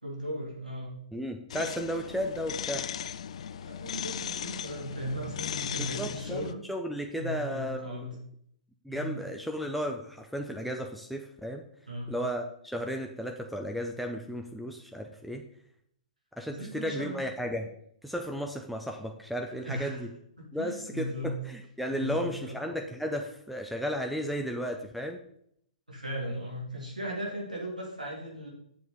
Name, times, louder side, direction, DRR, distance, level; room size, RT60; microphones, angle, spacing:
voice 1, 0.0-0.9 3.6-6.6 7.2-8.1 8.9-9.1 11.9-12.1 16.5-17.2 19.6-20.0 20.4-21.4 21.9-22.5 25.9-28.5, equal, 85° right, -2 dB, 3.2 m, -37 dB
voice 2, 1.1-2.9 5.8-8.1 8.8-11.6 12.1-15.4 16.4-17.7 18.0-20.1 20.5-25.2, equal, ahead, 2 dB, 0.5 m, -34 dB
sound 1, 1.5-6.5, left 9 dB, 55° left, 0.4 m, -37 dB
7.8 x 7.1 x 4.2 m, 0.70 s
figure-of-eight pair, 115°, 4 cm